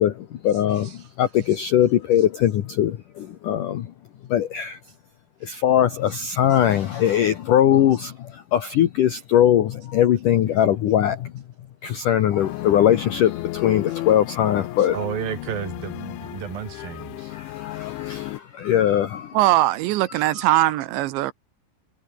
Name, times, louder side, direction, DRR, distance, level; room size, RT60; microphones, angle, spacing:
voice 1, 0.0-3.9 4.3-4.8 5.4-11.4 11.8-15.0 17.3-19.4 20.2-20.3, left 11 dB, 65° left, 2.3 m, -21 dB
sound 1, 12.4-18.4, left 18 dB, 90° left, 3.3 m, -34 dB
voice 2, 14.9-17.3 20.3-20.5, right 8 dB, 55° right, 4.9 m, -32 dB
voice 3, 19.3-21.3, right 16 dB, 80° right, 3.3 m, -20 dB
omnidirectional pair, 5.2 m